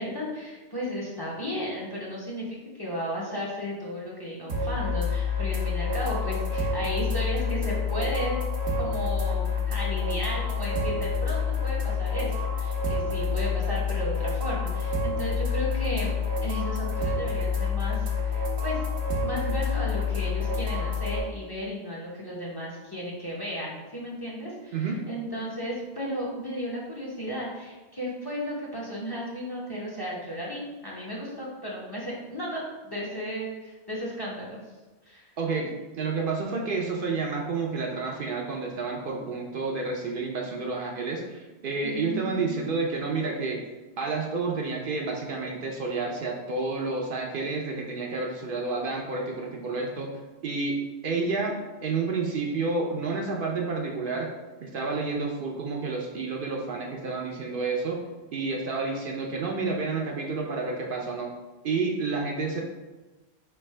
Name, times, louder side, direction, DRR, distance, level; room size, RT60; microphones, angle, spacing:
voice 1, 0.0-8.4 8.8-16.1 16.4-18.9 19.2-34.6 35.1-35.3 41.8-42.6, equal, 25° left, -5 dB, 0.8 m, -34 dB
sound 1, 4.5-21.2, left 5 dB, 80° right, 1.1 m, -28 dB
voice 2, 35.4-43.6 44.0-50.1 50.4-54.3 54.6-58.0 58.3-61.3 61.6-62.6, right 4 dB, 60° right, 0 dB, 0.7 m, -30 dB
4.2 x 3.4 x 3.2 m, 1.2 s
omnidirectional pair, 1.1 m